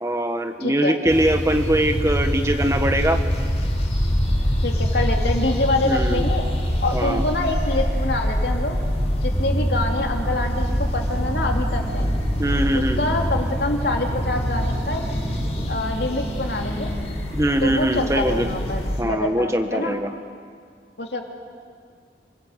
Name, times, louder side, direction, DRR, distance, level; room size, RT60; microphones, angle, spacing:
voice 1, 0.0-3.2 5.8-6.2 6.9-7.2 12.4-13.0 17.3-18.5 19.0-20.1, right 1 dB, 15° right, 6 dB, 1.4 m, -22 dB
voice 2, 0.6-1.0 4.6-6.4 6.8-8.8 9.2-12.1 12.7-15.0 15.7-16.9 17.6-20.0 21.0-21.2, left 2 dB, 75° left, 2 dB, 2.9 m, -26 dB
sound 1, 1.1-19.0, equal, 35° left, 4.6 m, -25 dB
sound 2, 9.3-15.7, equal, 5° left, 5.4 m, -28 dB
27.0 x 20.5 x 8.2 m, 2.1 s
head